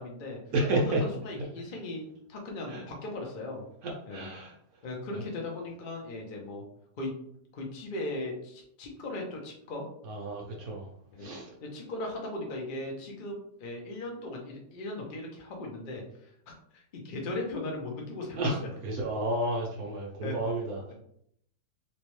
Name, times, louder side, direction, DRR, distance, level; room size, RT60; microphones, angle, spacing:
voice 1, 0.0-0.4 0.7-3.6 4.1-4.3 4.8-6.6 7.0-7.1 7.5-9.9 11.1-11.3 11.6-18.7 20.2-20.4, left 2 dB, 80° left, 0 dB, 0.4 m, -38 dB
voice 2, 0.5-1.0 2.7-2.8 3.8-4.5 10.1-10.9 11.2-11.5 18.4-20.8, right 1 dB, 65° right, -1 dB, 0.9 m, -31 dB
3.2 x 3.1 x 3.1 m, 0.69 s
omnidirectional pair, 2.1 m